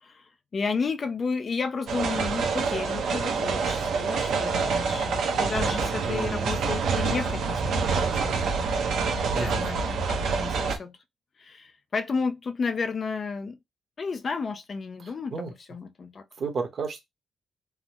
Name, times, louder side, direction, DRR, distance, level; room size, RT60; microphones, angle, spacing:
voice 1, 0.0-8.5 9.4-11.0 11.4-13.6 14.0-16.2, left 4 dB, 40° left, 0.3 m, -32 dB
sound 1, 1.9-10.8, right 4 dB, 75° right, 0.8 m, -27 dB
voice 2, 6.0-6.5 9.3-9.6 15.0-15.5 16.4-17.0, right 4 dB, 50° right, 0.9 m, -32 dB
3.4 x 2.0 x 2.8 m
cardioid pair, 135°, 0 cm